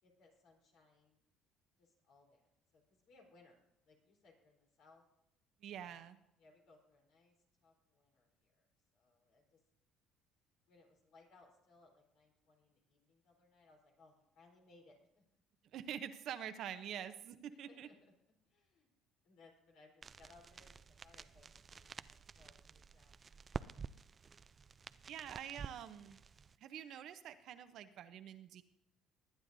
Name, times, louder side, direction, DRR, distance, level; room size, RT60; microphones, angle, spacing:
voice 1, 0.0-1.2 1.8-5.0 5.7-6.0 6.4-7.3 7.6-9.6 10.7-15.2 17.5-18.1 18.4-18.9 19.2-23.2, left 3 dB, 70° left, 0 dB, 3.9 m, -66 dB
voice 2, 5.6-6.2 15.7-17.9 25.1-26.2 26.6-28.6, right 9 dB, 65° right, 11 dB, 0.8 m, -46 dB
sound 1, 20.0-26.6, right 5 dB, 35° right, 0.4 m, -50 dB
20.5 x 9.7 x 2.7 m, 0.83 s
supercardioid pair, 85°, 0 cm